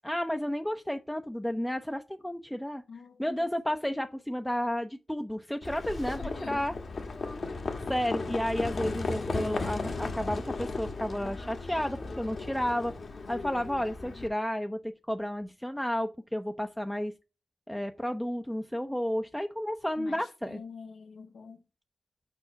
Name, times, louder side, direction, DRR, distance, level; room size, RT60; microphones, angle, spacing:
voice 1, 0.0-2.8 3.2-6.7 7.9-12.9 13.3-17.1 17.7-20.6, equal, 5° left, 0.5 m, -32 dB
voice 2, 2.9-3.5 6.1-6.6 20.0-21.6, left 5 dB, 90° left, 0.7 m, -45 dB
Livestock farm animals working animals, 5.6-14.3, left 3 dB, 65° left, 1.2 m, -36 dB
5.4 x 4.6 x 5.6 m
cardioid pair, 75°, 0 cm